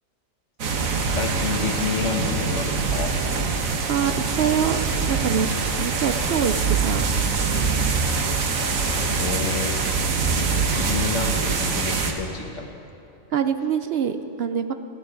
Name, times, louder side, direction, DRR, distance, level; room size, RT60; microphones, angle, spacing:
sound 1, 0.6-12.1, right 4 dB, 90° right, 1.6 m, -24 dB
voice 1, 1.1-3.1 9.2-9.7 10.7-12.7, left 5 dB, 65° left, 4 dB, 1.5 m, -29 dB
voice 2, 3.9-4.8 5.1-5.5 5.8-7.0 13.3-14.7, right 8 dB, 60° right, 9 dB, 0.7 m, -24 dB
18.0 x 7.0 x 9.6 m, 2.8 s
omnidirectional pair, 1.4 m